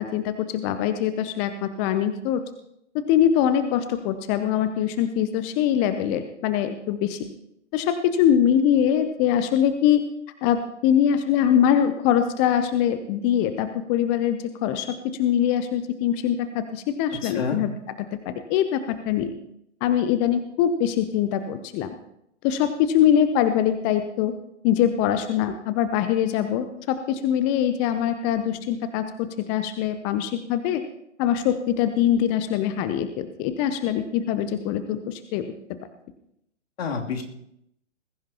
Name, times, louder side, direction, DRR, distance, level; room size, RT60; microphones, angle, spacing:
voice 1, 0.0-2.4 2.9-7.3 7.7-10.0 10.4-17.7 18.0-19.3 19.8-21.9 22.4-24.3 24.6-30.8 31.2-35.5, left 9 dB, 15° left, 10 dB, 0.4 m, -23 dB
voice 2, 17.2-17.6 36.8-37.2, left 5 dB, 60° left, 1 dB, 2.8 m, -28 dB
20.5 x 15.0 x 2.9 m, 0.77 s
figure-of-eight pair, 125°, 36 cm